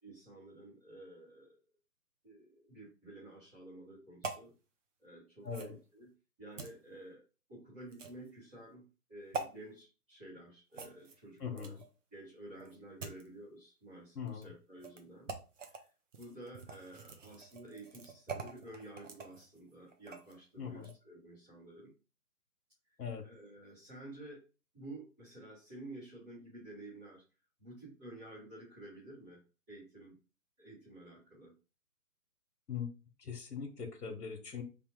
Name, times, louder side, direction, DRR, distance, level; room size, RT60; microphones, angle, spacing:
voice 1, 0.0-1.6 2.2-4.5 5.0-6.1 6.4-7.2 7.5-11.8 12.1-15.3 15.6-15.9 16.1-21.9 23.2-24.4 24.7-27.2 27.6-29.4 29.7-30.2 30.6-31.5, right 1 dB, 5° right, -12 dB, 1.0 m, -51 dB
sound 1, 4.2-4.5 5.5-5.7 6.6-6.7 7.9-8.3 9.3-9.5 10.7-11.9 12.6-13.3 14.3-14.4 14.8-15.0 15.3-15.8 16.1-20.4 20.7-20.9, right 4 dB, 55° right, 0.7 m, -44 dB
voice 2, 11.4-11.8 14.2-14.5 20.6-20.9 23.0-23.2 32.7-32.9 33.2-34.6, left 6 dB, 85° left, 3 dB, 1.1 m, -41 dB
3.4 x 2.3 x 4.3 m, 0.33 s
hypercardioid pair, 170°, 47 cm